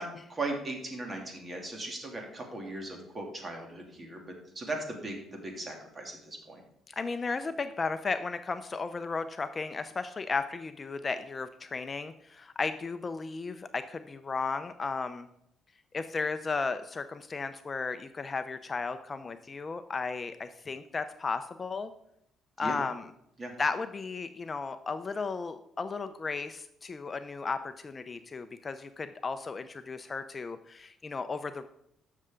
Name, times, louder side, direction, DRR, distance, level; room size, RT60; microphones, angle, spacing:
voice 1, 0.0-6.6 22.6-22.8 23.4-23.5, right 2 dB, 30° right, 2 dB, 2.7 m, -38 dB
voice 2, 6.9-15.3 15.9-21.9 22.6-23.0 23.6-31.7, left 4 dB, 30° left, 10 dB, 0.5 m, -34 dB
12.0 x 6.7 x 3.7 m, 0.77 s
cardioid pair, 95°, 0 cm